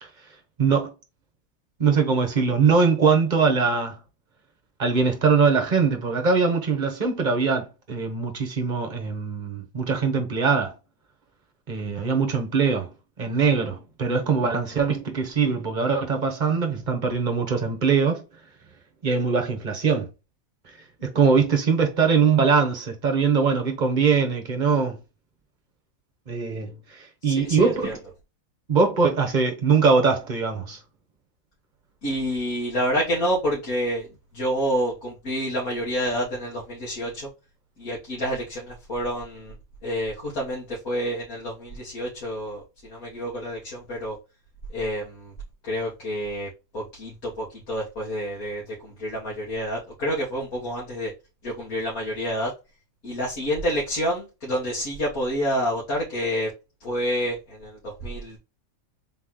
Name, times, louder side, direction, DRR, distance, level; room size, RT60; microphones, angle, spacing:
voice 1, 0.6-0.9 1.8-4.0 4.8-10.7 11.7-12.9 13.2-18.2 19.0-20.1 21.0-25.0 26.3-28.0 28.7-30.8, right 5 dB, 35° right, 1.0 m, -22 dB
voice 2, 27.2-27.9 32.0-34.1 34.3-37.3 37.8-39.5 39.8-44.2 44.7-45.3 45.6-46.5 46.7-51.1 51.4-52.5 53.0-56.5 56.8-58.4, equal, 80° left, 2.0 m, -28 dB
4.0 x 3.0 x 3.8 m
omnidirectional pair, 1.5 m